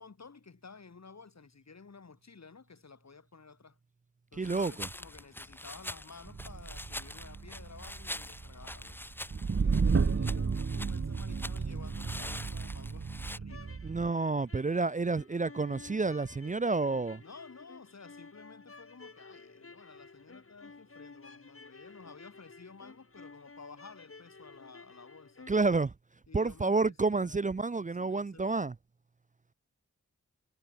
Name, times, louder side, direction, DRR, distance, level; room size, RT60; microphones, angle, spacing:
voice 1, 0.0-3.8 4.3-9.0 9.6-13.8 17.2-25.6 26.3-27.4 28.0-28.5, left 4 dB, 65° left, 7.6 m, -53 dB
voice 2, 4.3-4.9 13.8-17.2 25.5-25.9 26.3-28.8, right 3 dB, 25° right, 0.6 m, -29 dB
sound 1, 4.4-13.4, left 1 dB, 5° left, 0.9 m, -45 dB
sound 2, 6.2-14.1, right 5 dB, 50° right, 1.4 m, -33 dB
sound 3, 13.4-25.7, left 3 dB, 50° left, 6.9 m, -53 dB
wide cardioid pair, 65°, 29 cm